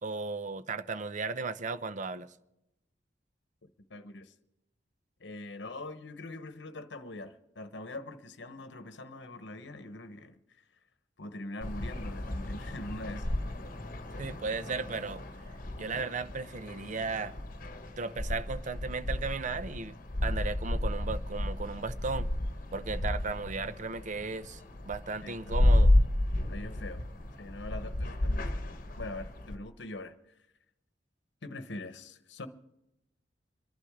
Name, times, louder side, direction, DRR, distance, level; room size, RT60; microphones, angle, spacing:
voice 1, 0.0-2.3 14.2-15.2 15.8-17.3 18.0-20.0 20.2-22.3 22.7-25.9, right 4 dB, 45° right, 0.7 m, -35 dB
voice 2, 3.6-4.3 5.2-10.4 11.2-13.4 25.2-25.5 26.5-27.0 27.4-28.6 29.0-30.2 31.4-32.5, left 2 dB, 70° left, 1.0 m, -43 dB
sound 1, 11.6-29.6, left 1 dB, 50° left, 1.2 m, -32 dB
26.5 x 11.5 x 3.6 m
head